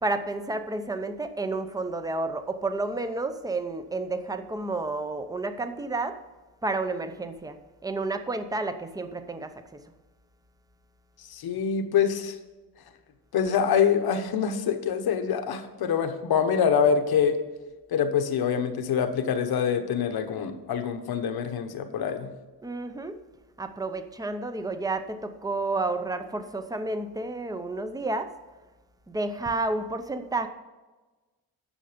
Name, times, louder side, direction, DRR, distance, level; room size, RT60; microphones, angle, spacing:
voice 1, 0.0-6.2 6.6-7.6 7.8-9.8 22.6-23.2 23.6-28.3 29.1-30.5, right 2 dB, 10° right, 9 dB, 0.6 m, -31 dB
voice 2, 11.3-12.3 13.3-17.4 17.9-22.3, left 7 dB, 65° left, 7 dB, 1.1 m, -25 dB
10.0 x 6.8 x 5.1 m, 1.2 s
cardioid pair, 135°, 40 cm